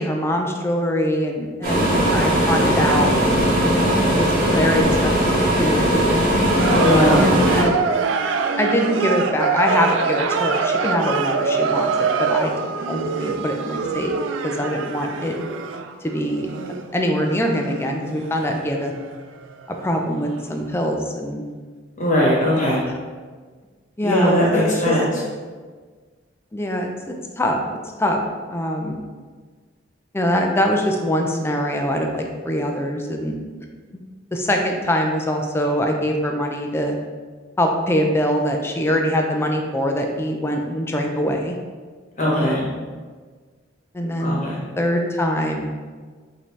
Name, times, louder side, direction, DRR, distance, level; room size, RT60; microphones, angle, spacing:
voice 1, 0.0-3.8 4.2-5.2 5.6-6.2 7.2-7.7 8.6-12.5 12.9-14.1 14.4-15.4 16.0-16.5 16.9-18.9 19.8-21.4 24.0-25.0 26.5-26.9 27.4-27.6 28.0-28.2 28.5-29.0 30.1-33.3 33.9-34.0 34.3-36.9 37.6-41.5 42.3-42.9 43.9-44.4 44.8-45.7, equal, 15° left, 2 dB, 0.4 m, -23 dB
sound 1, 1.6-7.6, equal, 50° right, 1.4 m, -19 dB
sound 2, 6.6-20.0 20.3-20.4, right 5 dB, 80° right, 0.3 m, -25 dB
voice 2, 6.7-7.2 22.0-22.8 24.0-25.0 42.2-42.6 44.2-44.6, equal, 40° left, -5 dB, 1.2 m, -19 dB
5.1 x 2.8 x 3.2 m, 1.5 s
head